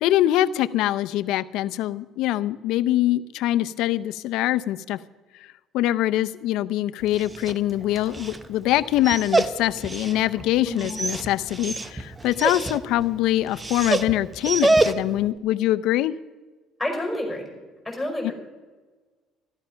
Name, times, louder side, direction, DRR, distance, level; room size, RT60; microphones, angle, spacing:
voice 1, 0.0-5.0 5.7-16.1 18.2-18.3, left 14 dB, 75° left, 13 dB, 0.6 m, -23 dB
Dog, 7.0-15.3, right 2 dB, 20° right, 0.8 m, -27 dB
voice 2, 16.8-17.5 17.9-18.3, left 1 dB, 5° left, 0 dB, 5.2 m, -29 dB
14.5 x 12.5 x 5.7 m, 1.3 s
cardioid pair, 115°, 0 cm